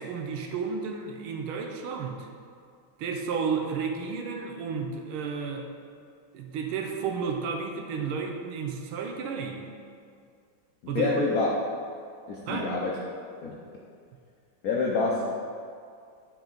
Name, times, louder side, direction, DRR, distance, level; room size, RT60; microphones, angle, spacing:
voice 1, 0.0-2.3 3.0-5.7 6.3-9.7 10.9-11.3 12.5-12.7, right 5 dB, 85° right, 3 dB, 1.6 m, -32 dB
voice 2, 10.8-11.6 12.3-12.9 13.4-13.5 14.6-15.2, left 3 dB, 75° left, -3 dB, 0.8 m, -27 dB
8.8 x 4.7 x 3.9 m, 2.3 s
omnidirectional pair, 2.3 m